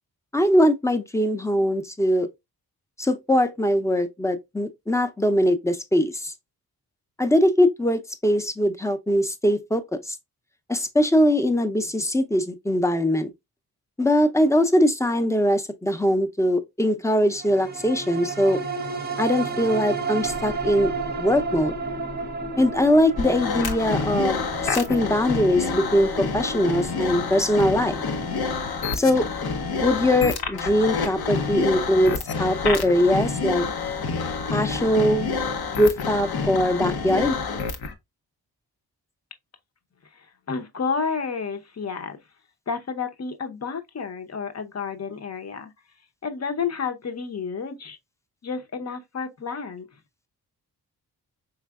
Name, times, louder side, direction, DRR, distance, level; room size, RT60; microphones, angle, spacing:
voice 1, 0.3-2.3 3.0-6.3 7.2-10.2 10.7-13.3 14.0-18.6 19.2-20.9 21.2-21.8 22.6-24.4 24.6-28.0 28.9-29.3 29.8-33.7 34.5-35.3 35.8-37.4, equal, 10° left, 0.6 m, -21 dB
sound 1, 17.4-32.1 32.5-32.6, right 3 dB, 25° right, 0.8 m, -33 dB
sound 2, 23.2-37.9, left 5 dB, 75° left, 0.8 m, -28 dB
voice 2, 40.1-42.2 42.7-45.7 46.2-48.0 48.4-49.9, left 5 dB, 40° left, 0.8 m, -31 dB
4.7 x 3.2 x 2.3 m
cardioid pair, 70°, 38 cm